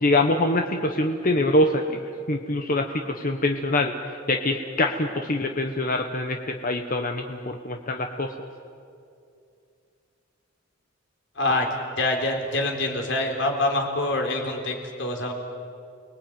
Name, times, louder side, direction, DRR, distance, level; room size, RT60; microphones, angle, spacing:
voice 1, 0.0-2.0 2.3-3.9 4.3-8.3, left 1 dB, 45° left, 4 dB, 1.2 m, -24 dB
voice 2, 11.4-11.7 12.0-15.3, left 2 dB, 65° left, 3 dB, 4.0 m, -25 dB
30.0 x 20.0 x 9.3 m, 2.5 s
head